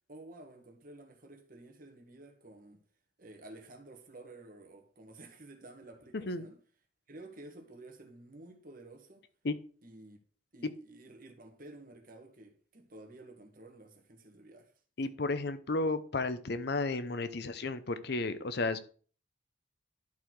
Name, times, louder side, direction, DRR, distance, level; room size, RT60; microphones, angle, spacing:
voice 1, 0.1-2.8 3.2-6.6 7.1-9.2 9.8-10.2 10.5-14.7, right 2 dB, 45° right, 1.6 m, -52 dB
voice 2, 15.0-18.8, left 3 dB, 60° left, 0.7 m, -33 dB
11.5 x 4.1 x 4.7 m
head